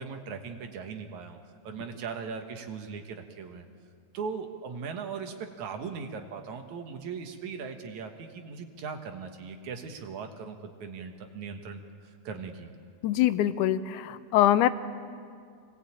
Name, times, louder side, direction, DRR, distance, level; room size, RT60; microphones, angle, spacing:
voice 1, 0.0-1.4 1.6-3.7 4.1-11.8 12.2-12.7, right 5 dB, 70° right, 5 dB, 2.8 m, -39 dB
voice 2, 13.0-14.7, left 12 dB, 90° left, 13 dB, 2.2 m, -23 dB
24.5 x 19.0 x 8.8 m, 2.3 s
omnidirectional pair, 3.5 m